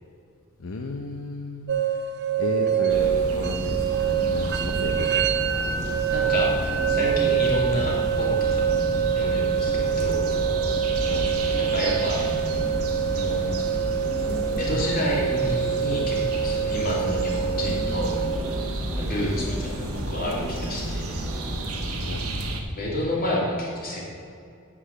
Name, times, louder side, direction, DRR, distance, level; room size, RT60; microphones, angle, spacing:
voice 1, 0.6-1.9 2.4-5.7 11.0-11.3 22.0-22.2, left 3 dB, 65° left, 3 dB, 0.6 m, -34 dB
sound 1, 1.7-18.4, right 8 dB, 50° right, 0.6 m, -25 dB
sound 2, 2.6-22.0, equal, 5° right, 0.9 m, -39 dB
sound 3, 2.9-22.6, right 1 dB, 90° right, 1.2 m, -31 dB
voice 2, 6.1-6.5 6.9-8.7 9.1-10.3 11.5-12.2 13.1-13.5 14.6-18.2 19.0-21.2 22.8-24.0, left 1 dB, 45° left, -3 dB, 2.6 m, -29 dB
8.1 x 6.1 x 7.5 m, 2.4 s
head